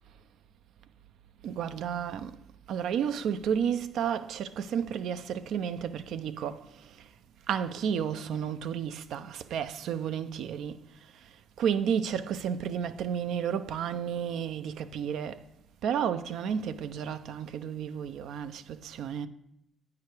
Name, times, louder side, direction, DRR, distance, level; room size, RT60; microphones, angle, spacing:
voice 1, 1.4-2.4 2.7-6.6 7.5-10.8 11.6-15.4 15.8-19.3, right 8 dB, 80° right, 0.4 m, -32 dB
8.3 x 4.7 x 4.6 m
cardioid pair, 75°, 0 cm